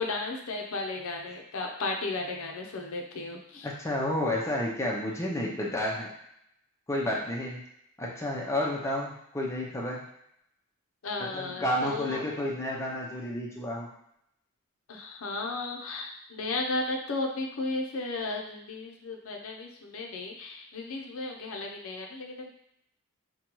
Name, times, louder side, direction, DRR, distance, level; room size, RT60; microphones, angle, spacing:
voice 1, 0.0-3.7 11.0-12.2 14.9-22.5, left 3 dB, 75° left, 1 dB, 0.6 m, -34 dB
voice 2, 3.6-6.1 6.9-7.6 8.0-10.0 11.3-13.9, left 1 dB, 15° left, -3 dB, 0.5 m, -31 dB
5.1 x 2.2 x 3.0 m, 0.77 s
head